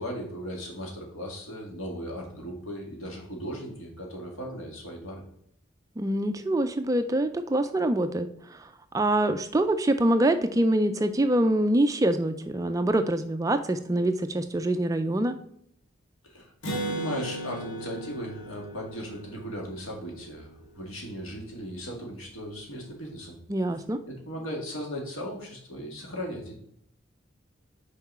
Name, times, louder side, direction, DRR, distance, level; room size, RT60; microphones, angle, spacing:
voice 1, 0.0-5.2 16.2-23.4 24.1-26.5, equal, 85° left, 0 dB, 2.1 m, -37 dB
voice 2, 6.0-15.4 23.5-24.0, right 1 dB, 15° right, 9 dB, 0.3 m, -25 dB
Acoustic guitar, 16.6-20.3, right 1 dB, 65° left, 1.6 m, -36 dB
5.9 x 4.6 x 4.2 m, 0.70 s
head